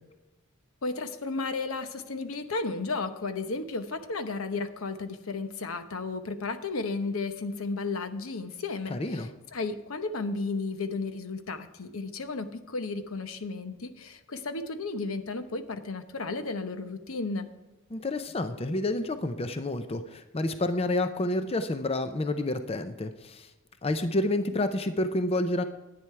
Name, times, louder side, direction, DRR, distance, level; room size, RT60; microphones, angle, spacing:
voice 1, 0.8-17.5, left 3 dB, 80° left, 9 dB, 0.9 m, -33 dB
voice 2, 8.9-9.3 17.9-23.5 23.8-25.6, left 2 dB, 30° left, 9 dB, 0.5 m, -29 dB
10.5 x 9.7 x 4.6 m, 1.1 s
head